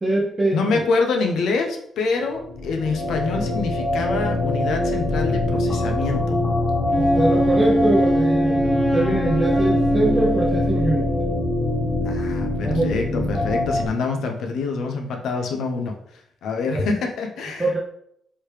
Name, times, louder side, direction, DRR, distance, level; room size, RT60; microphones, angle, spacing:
voice 1, 0.0-0.8 7.0-11.1 12.6-13.1 16.7-16.9 17.6-17.8, right 2 dB, 20° right, -4 dB, 0.8 m, -23 dB
voice 2, 0.5-6.4 12.0-16.0 16.4-17.8, left 4 dB, 75° left, 3 dB, 0.6 m, -26 dB
sound 1, 2.3-13.9, left 2 dB, 40° left, 1.0 m, -24 dB
Wind instrument woodwind instrument, 6.9-11.3, right 1 dB, 10° left, 0.7 m, -22 dB
3.2 x 2.8 x 3.2 m, 0.70 s
cardioid pair, 70°, 0 cm